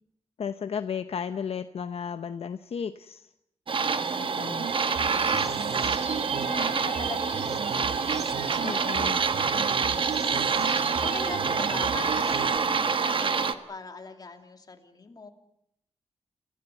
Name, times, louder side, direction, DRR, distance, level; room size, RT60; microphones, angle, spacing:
voice 1, 0.4-3.3 4.2-5.1 8.6-9.2, left 7 dB, 60° left, 10 dB, 0.9 m, -34 dB
sound 1, 3.7-13.5, right 5 dB, 50° right, 1.4 m, -27 dB
voice 2, 4.0-4.8 6.4-9.4 9.7-10.4 10.7-15.3, left 3 dB, 35° left, 5 dB, 2.9 m, -42 dB
sound 2, 4.6-12.6, right 6 dB, 75° right, 1.6 m, -35 dB
29.0 x 16.0 x 9.2 m, 0.79 s
wide cardioid pair, 125°, 11 cm